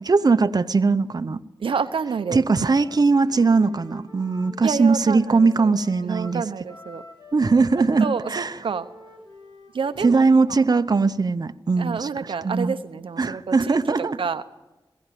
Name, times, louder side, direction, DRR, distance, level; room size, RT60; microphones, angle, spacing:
voice 1, 0.0-1.4 2.3-6.4 7.3-8.6 10.0-12.7 13.2-14.2, right 4 dB, 50° right, 9 dB, 0.8 m, -20 dB
voice 2, 1.6-2.4 4.6-5.7 6.0-7.0 8.0-8.9 9.7-10.2 11.8-13.6 14.0-14.4, right 5 dB, 80° right, 9 dB, 0.8 m, -28 dB
Wind instrument woodwind instrument, 2.5-10.9, left 2 dB, 60° left, 6.1 m, -47 dB
22.0 x 16.0 x 9.2 m, 1.0 s
cardioid pair, 45°, 9 cm